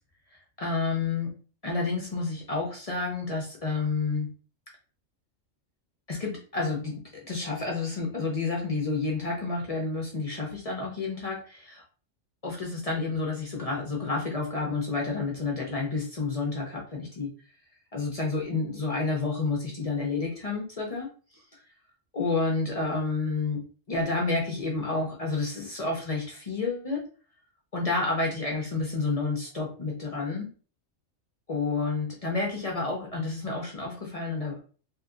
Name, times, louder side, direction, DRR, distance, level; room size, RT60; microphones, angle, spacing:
voice 1, 0.3-1.3 1.6-4.3 6.1-7.0 7.3-11.8 12.4-17.3 17.9-21.1 22.1-23.6 23.9-27.0 27.7-30.5 31.5-34.6, left 3 dB, 45° left, -1 dB, 0.5 m, -30 dB
2.8 x 2.6 x 2.4 m, 0.38 s
omnidirectional pair, 1.4 m